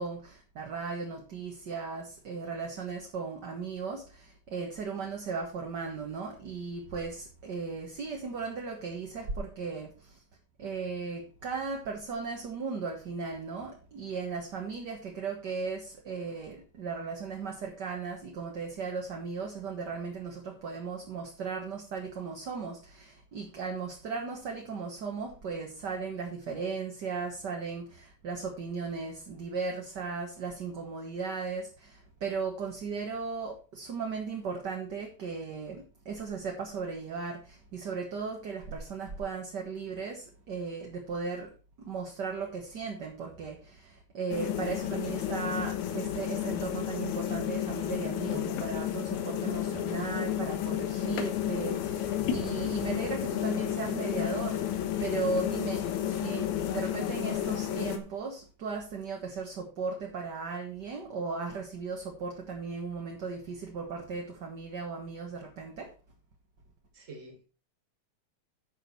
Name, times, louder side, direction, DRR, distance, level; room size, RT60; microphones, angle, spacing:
voice 1, 0.0-10.2 10.6-65.9, right 4 dB, 45° right, 1.6 m, -36 dB
sound 1, 44.3-58.0, left 11 dB, 90° left, 2.5 m, -32 dB
voice 2, 48.3-48.7 66.9-67.4, right 4 dB, 25° right, 2.4 m, -45 dB
10.0 x 6.3 x 4.5 m
omnidirectional pair, 3.3 m